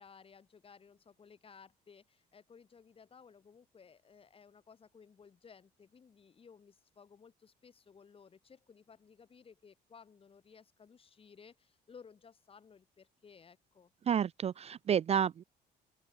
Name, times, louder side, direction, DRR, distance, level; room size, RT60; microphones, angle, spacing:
voice 1, 0.0-13.9, left 6 dB, 35° left, 4.2 m, -58 dB
voice 2, 14.1-15.4, right 8 dB, 40° right, 0.5 m, -30 dB
open air
cardioid pair, 110°, 17 cm